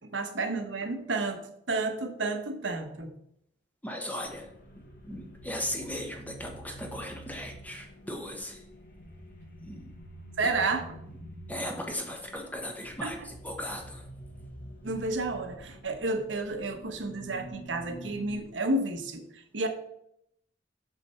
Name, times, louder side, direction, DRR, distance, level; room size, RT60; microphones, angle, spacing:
voice 1, 0.0-3.1 10.4-10.8 13.0-13.1 14.8-19.7, right 2 dB, 80° right, 6 dB, 1.1 m, -31 dB
voice 2, 3.8-8.6 9.6-9.9 11.1-11.2 11.5-14.1, left 1 dB, 10° left, 2 dB, 1.3 m, -37 dB
sound 1, 4.2-18.4, right 1 dB, 55° left, 1.2 m, -47 dB
6.7 x 6.4 x 4.4 m, 0.75 s
head